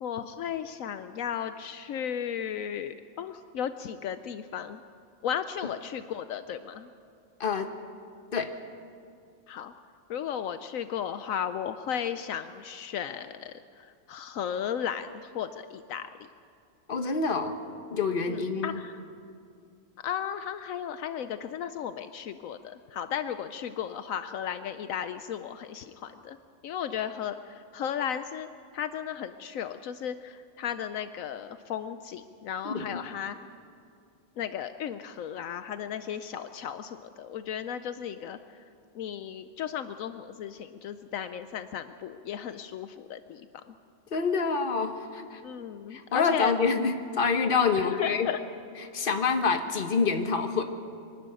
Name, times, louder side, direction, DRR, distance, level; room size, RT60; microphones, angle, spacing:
voice 1, 0.0-4.8 5.2-6.9 9.5-9.7 10.1-16.1 18.3-18.9 20.0-26.4 26.6-28.5 28.7-33.4 34.4-38.4 38.9-43.5 45.4-46.5 47.8-48.4, left 9 dB, 75° left, 10 dB, 1.1 m, -35 dB
voice 2, 7.4-7.7 8.3-8.5 16.9-17.6 17.9-18.8 32.6-33.0 44.1-45.4 45.9-48.3 48.8-50.6, left 5 dB, 40° left, 7 dB, 1.3 m, -27 dB
23.5 x 12.5 x 9.1 m, 2.4 s
omnidirectional pair, 1.4 m